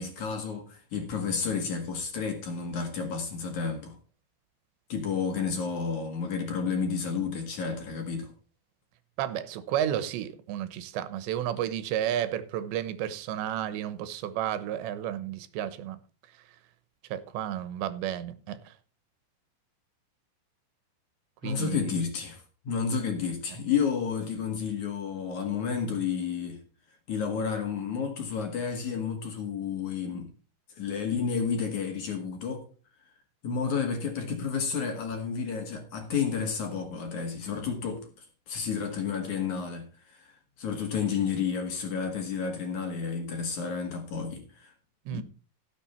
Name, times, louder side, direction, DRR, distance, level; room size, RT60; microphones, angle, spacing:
voice 1, 0.0-3.9 4.9-8.3 21.4-26.6 27.1-30.3 30.7-32.6 33.4-38.1 38.5-40.3 40.6-44.7 45.1-45.2, left 6 dB, 55° left, 2.6 m, -31 dB
voice 2, 9.2-16.0 17.1-18.7 21.4-21.9 45.1-45.2, right 11 dB, 90° right, 3.2 m, -32 dB
17.0 x 6.9 x 4.4 m
omnidirectional pair, 5.1 m